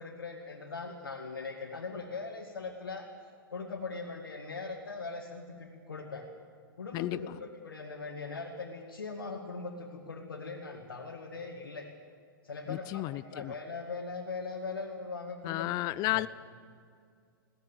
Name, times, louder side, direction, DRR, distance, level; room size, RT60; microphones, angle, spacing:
voice 1, 0.0-3.1 3.5-6.2 6.8-11.9 12.4-15.7 16.1-16.2, left 4 dB, 75° left, -2 dB, 2.3 m, -40 dB
voice 2, 6.9-7.4 12.7-13.5 15.4-16.3, left 17 dB, 35° left, 16 dB, 0.5 m, -33 dB
21.0 x 17.5 x 7.3 m, 2.2 s
figure-of-eight pair, 105°, 12 cm